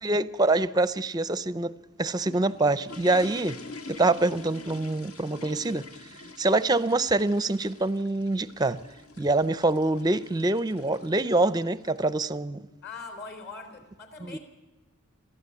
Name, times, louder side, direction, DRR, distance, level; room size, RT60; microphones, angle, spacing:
voice 1, 0.0-1.7 2.0-3.6 3.9-5.9 6.4-8.8 9.2-12.6 14.2-14.4, right 2 dB, 20° right, 0.5 m, -25 dB
sound 1, 1.8-12.1, left 3 dB, 80° left, 1.7 m, -46 dB
voice 2, 12.8-14.4, left 4 dB, 50° left, 3.8 m, -41 dB
22.0 x 15.0 x 8.4 m
head